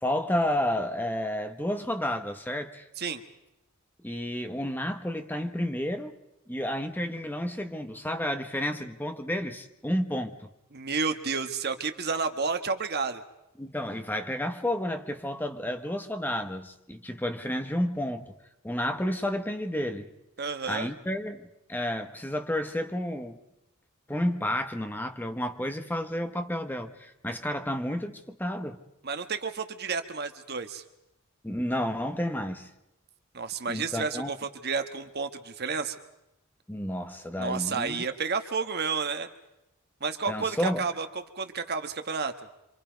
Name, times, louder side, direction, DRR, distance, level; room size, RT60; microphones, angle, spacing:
voice 1, 0.0-2.9 4.0-6.2 6.5-10.5 13.6-18.3 18.6-20.1 20.7-23.4 24.1-28.8 31.4-32.7 33.7-34.3 36.7-38.0 40.3-40.8, left 1 dB, 10° left, 1.2 m, -31 dB
voice 2, 10.7-13.2 20.4-20.9 29.0-30.8 33.3-35.9 37.4-39.3 40.0-41.1 41.3-42.3, right 5 dB, 50° right, 1.5 m, -31 dB
27.0 x 25.5 x 5.2 m
head